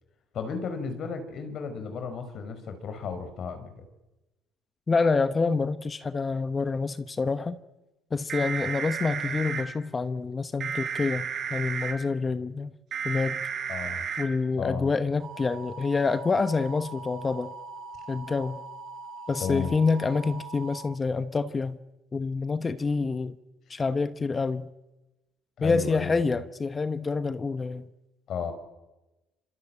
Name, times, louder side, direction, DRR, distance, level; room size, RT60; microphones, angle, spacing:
voice 1, 0.3-3.8 13.7-14.1 14.6-14.9 19.4-19.7 25.6-26.2 28.3-28.5, left 6 dB, 55° left, 5.2 m, -34 dB
voice 2, 4.9-7.6 8.1-12.7 13.0-13.4 14.2-17.5 18.1-18.6 19.3-21.8 22.1-23.4 23.7-24.7 25.6-27.9, left 4 dB, 25° left, 1.1 m, -27 dB
sound 1, 8.3-9.6 10.6-11.9 12.9-14.2 15.2-20.8, right 6 dB, 50° right, 6.4 m, -35 dB
26.5 x 23.0 x 8.8 m
cardioid pair, 95°, 0 cm